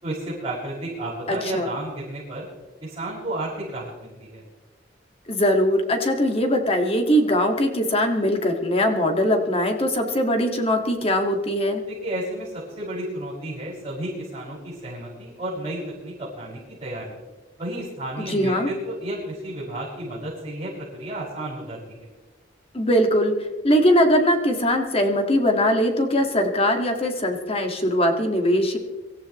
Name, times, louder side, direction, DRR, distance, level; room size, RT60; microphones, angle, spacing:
voice 1, 0.0-2.5 2.8-4.4 11.9-17.1 17.6-22.1, right 1 dB, 25° right, -11 dB, 6.3 m, -32 dB
voice 2, 1.3-1.7 5.3-11.8 18.2-18.7 22.7-23.3 23.6-28.8, equal, 30° left, 4 dB, 1.9 m, -21 dB
25.0 x 14.5 x 3.1 m, 1.2 s
head